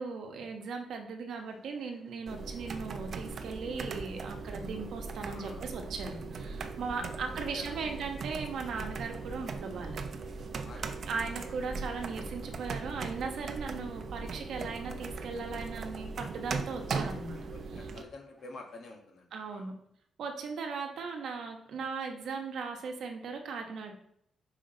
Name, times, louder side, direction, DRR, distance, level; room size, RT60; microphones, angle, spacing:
voice 1, 0.0-10.0 11.1-17.9 19.3-19.8 20.2-23.9, right 4 dB, 70° right, 4 dB, 1.0 m, -38 dB
sound 1, 1.3-2.3 3.0-17.7 18.4-18.7, right 1 dB, 15° right, 1.2 m, -51 dB
sound 2, 2.3-18.0, right 4 dB, 50° right, 0.6 m, -39 dB
voice 2, 5.2-5.7 6.8-7.9 10.6-11.1 17.5-19.7, left 3 dB, 60° left, 1 dB, 1.4 m, -50 dB
5.9 x 4.9 x 3.8 m, 0.72 s
cardioid pair, 130°, 0 cm